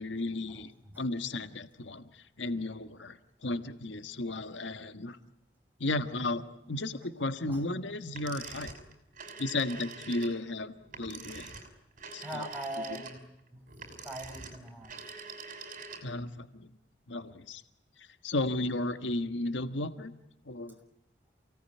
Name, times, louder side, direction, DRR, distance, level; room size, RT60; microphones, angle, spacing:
voice 1, 0.0-0.7 1.0-5.2 5.8-8.7 9.4-11.5 12.1-12.5 16.0-16.7 17.1-17.6 18.0-20.1 20.4-20.8, left 2 dB, 85° left, 9 dB, 1.5 m, -34 dB
sound 1, 8.1-16.3, right 4 dB, 45° right, 6.0 m, -45 dB
voice 2, 12.2-13.2 13.5-13.6 14.0-14.9, right 1 dB, 10° right, 3 dB, 6.4 m, -40 dB
29.0 x 18.5 x 10.0 m, 0.88 s
head